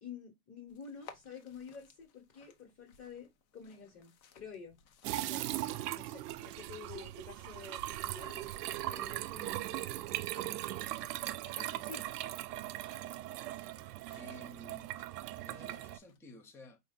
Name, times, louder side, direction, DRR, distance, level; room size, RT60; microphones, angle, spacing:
voice 1, 0.0-4.8 5.2-5.5 5.9-8.4 8.9-10.0 10.3-10.9 11.4-12.0, left 6 dB, 30° left, 1.5 m, -50 dB
sound 1, 0.7-16.2, left 7 dB, 65° left, 1.2 m, -62 dB
sound 2, 5.0-16.0, right 15 dB, 80° right, 0.5 m, -39 dB
voice 2, 14.2-15.0 15.4-16.8, left 1 dB, 5° left, 0.4 m, -53 dB
4.9 x 2.7 x 3.7 m
supercardioid pair, 130°, 47 cm